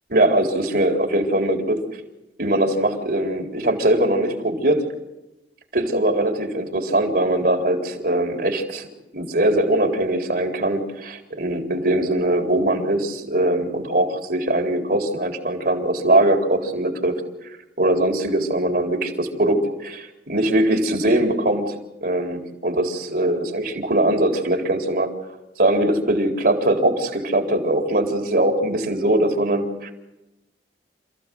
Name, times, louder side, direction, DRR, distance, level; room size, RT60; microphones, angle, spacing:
voice 1, 0.1-1.9 2.4-4.9 5.7-8.9 9.1-17.1 17.8-21.7 22.0-25.1 25.6-29.9, right 1 dB, 55° right, 4 dB, 4.0 m, -21 dB
29.0 x 15.5 x 7.8 m, 0.97 s
head